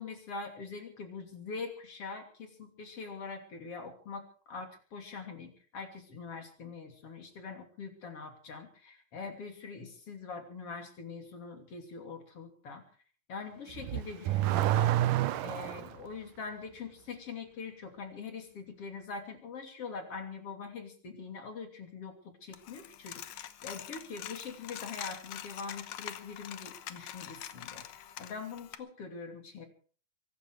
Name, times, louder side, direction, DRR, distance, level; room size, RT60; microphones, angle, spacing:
voice 1, 0.0-4.2 4.5-12.8 13.3-14.9 15.4-27.8 28.2-29.7, left 5 dB, 45° left, 5 dB, 3.7 m, -43 dB
Car / Accelerating revving vroom, 13.7-16.0, right 13 dB, 75° right, 2.3 m, -28 dB
Coin (dropping), 22.5-28.8, left 11 dB, 70° left, 2.3 m, -45 dB
23.5 x 13.0 x 4.8 m, 0.42 s
omnidirectional pair, 4.0 m